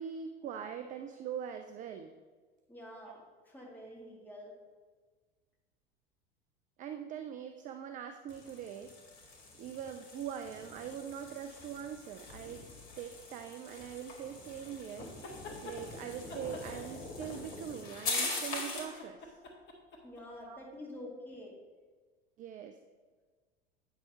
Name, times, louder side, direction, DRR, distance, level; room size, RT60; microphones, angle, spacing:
voice 1, 0.0-2.1 6.8-8.9 9.6-12.6 13.0-15.1 15.6-19.4 20.4-20.6 22.4-22.8, right 8 dB, 25° right, 7 dB, 0.4 m, -42 dB
voice 2, 2.7-4.5 20.0-21.6, left 1 dB, 5° left, -4 dB, 2.2 m, -48 dB
sound 1, 8.3-19.0, left 3 dB, 50° left, 2.0 m, -42 dB
sound 2, 15.1-15.8 16.3-17.7 18.0-20.2, left 3 dB, 35° left, 1.5 m, -48 dB
8.8 x 6.0 x 4.0 m, 1.4 s
figure-of-eight pair, 80°, 32 cm